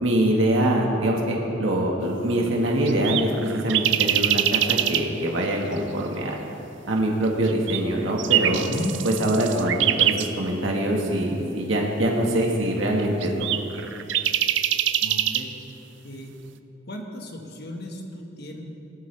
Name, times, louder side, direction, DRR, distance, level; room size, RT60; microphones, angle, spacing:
voice 1, 0.0-6.4 6.9-8.6 9.0-13.5 13.7-13.9, right 1 dB, 85° right, -1 dB, 1.6 m, -24 dB
sound 1, 2.5-5.0 7.5-10.3 13.0-15.4, right 11 dB, 70° right, 0.5 m, -24 dB
voice 2, 8.7-9.0 15.0-15.5 16.0-16.3 16.8-18.6, left 1 dB, 60° left, 2 dB, 1.5 m, -35 dB
18.5 x 11.5 x 3.4 m, 2.9 s
head